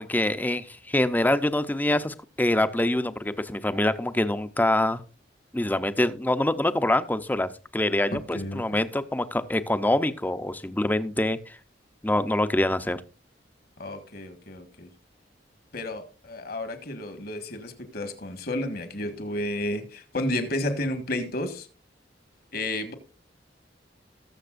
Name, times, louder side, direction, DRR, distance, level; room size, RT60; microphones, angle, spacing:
voice 1, 0.0-5.0 5.5-11.4 12.0-13.0, left 1 dB, 10° left, 0.6 m, -25 dB
voice 2, 8.1-8.8 13.8-14.9 15.7-21.7 22.5-22.9, left 1 dB, 60° left, 1.6 m, -32 dB
20.0 x 7.1 x 2.5 m
head